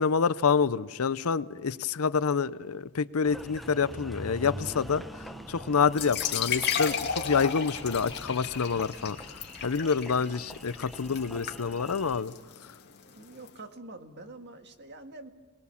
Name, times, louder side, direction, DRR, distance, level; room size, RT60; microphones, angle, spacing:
voice 1, 0.0-9.2 9.6-12.3, left 5 dB, 75° left, 16 dB, 0.6 m, -27 dB
Engine, 3.2-12.2, equal, ahead, 0.9 m, -44 dB
sound 1, 5.9-13.5, left 7 dB, 50° left, 2.3 m, -34 dB
voice 2, 13.2-15.3, right 2 dB, 50° right, 6 dB, 1.7 m, -45 dB
29.5 x 20.0 x 7.1 m, 1.4 s
head